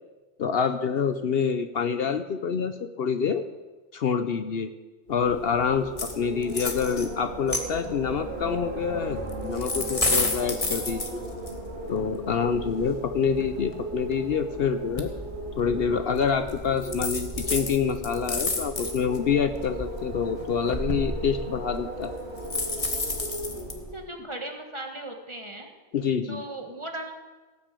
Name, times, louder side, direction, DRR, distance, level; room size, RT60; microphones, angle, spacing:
voice 1, 0.4-3.4 3.9-4.7 5.1-11.2 11.9-15.2 15.6-22.1 25.9-26.4, left 6 dB, 60° left, 10 dB, 0.9 m, -27 dB
Wind, 5.1-24.1, right 1 dB, 40° right, 2.8 m, -36 dB
sound 1, 6.0-6.1 6.4-7.1 7.5-8.0 9.3-11.5 12.7-12.8 13.2-14.4 15.0-15.1 15.6-15.8 16.5-16.6 16.8-19.2 19.7-21.1 22.4-23.7, left 3 dB, 30° left, 1.4 m, -30 dB
voice 2, 23.9-25.7 26.3-27.1, right 1 dB, 25° right, 3 dB, 1.5 m, -37 dB
17.5 x 6.8 x 8.3 m, 1.2 s
omnidirectional pair, 1.2 m